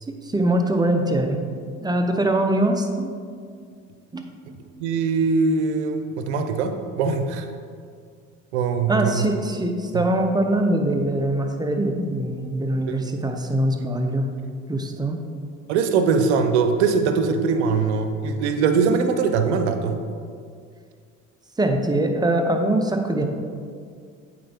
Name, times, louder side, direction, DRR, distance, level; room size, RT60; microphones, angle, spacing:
voice 1, 0.1-1.4 1.8-3.1 4.1-4.3 8.9-14.3 14.7-15.2 21.6-23.2, right 1 dB, 10° right, 4 dB, 0.8 m, -22 dB
voice 2, 4.8-7.5 8.5-9.3 9.9-10.1 12.9-13.0 15.7-20.0, right 5 dB, 85° right, 7 dB, 0.6 m, -22 dB
8.6 x 4.0 x 3.5 m, 2.2 s
hypercardioid pair, 60°, 33 cm